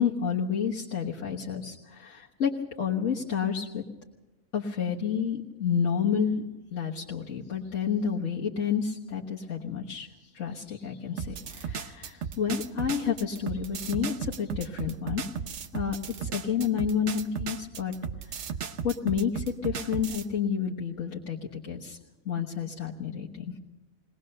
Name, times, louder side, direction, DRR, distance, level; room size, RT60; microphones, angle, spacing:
voice 1, 0.0-2.5 2.8-3.8 4.5-6.4 6.7-15.2 15.7-17.9 18.8-22.0 22.3-23.5, left 7 dB, 65° left, -4 dB, 1.7 m, -30 dB
sound 1, 11.2-20.3, right 7 dB, 60° right, 1.1 m, -35 dB
21.0 x 19.5 x 6.6 m, 1.0 s
omnidirectional pair, 1.4 m